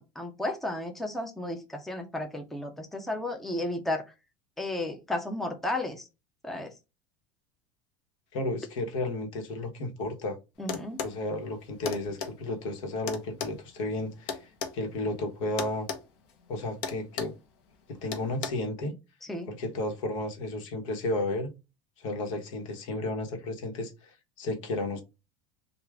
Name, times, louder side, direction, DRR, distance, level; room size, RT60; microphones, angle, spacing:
voice 1, 0.0-4.1 4.6-6.1 6.4-6.7 10.6-11.0 19.3-19.5, left 1 dB, ahead, 0.4 m, -33 dB
voice 2, 8.3-10.4 11.0-15.9 16.5-17.3 17.9-18.9 19.5-21.5 22.0-25.0, left 2 dB, 85° left, 1.2 m, -33 dB
sound 1, 10.7-11.2 11.9-12.3 13.1-14.8 15.6-16.0 16.3-16.5 16.8-17.4 18.1-18.5, left 6 dB, 60° left, 0.9 m, -34 dB
3.5 x 2.4 x 3.3 m
cardioid pair, 160°, 16 cm